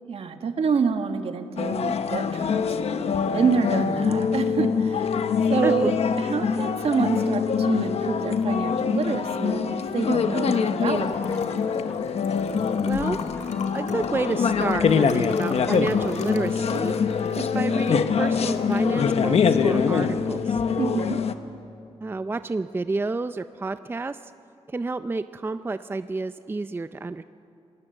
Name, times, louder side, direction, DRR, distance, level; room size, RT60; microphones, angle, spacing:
voice 1, 0.1-2.6 3.3-5.1 5.5-11.1 20.8-21.2, right 5 dB, 60° right, 7 dB, 1.6 m, -27 dB
sound 1, 1.6-21.3, left 6 dB, 70° left, 1.1 m, -24 dB
Liquid, 10.5-20.6, left 6 dB, 85° left, 1.7 m, -41 dB
sound 2, 10.8-12.0 12.6-12.7 13.0-14.1 14.6-14.8 15.3-16.8 17.3-18.0 18.5-19.8 20.3-21.3, left 1 dB, 15° left, 3.5 m, -44 dB
voice 2, 12.8-13.2 13.7-17.0 17.3-20.6 22.0-24.2 24.7-27.2, right 3 dB, 20° right, 11 dB, 0.5 m, -30 dB
28.0 x 19.5 x 7.9 m, 2.6 s
wide cardioid pair, 110°, 11 cm